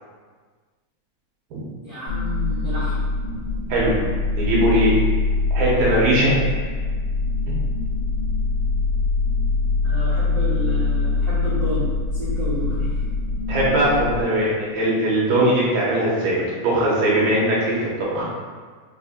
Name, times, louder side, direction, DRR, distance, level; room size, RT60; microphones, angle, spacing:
voice 1, 1.8-3.0 9.8-13.0, equal, 45° right, -14 dB, 1.3 m, -31 dB
sound 1, 2.1-14.2, left 3 dB, 75° left, 1.3 m, -23 dB
voice 2, 4.3-4.9 5.5-6.3 7.5-7.6 13.5-16.4 16.6-18.3, right 1 dB, 80° right, -6 dB, 2.2 m, -20 dB
5.3 x 2.5 x 2.5 m, 1.5 s
omnidirectional pair, 3.4 m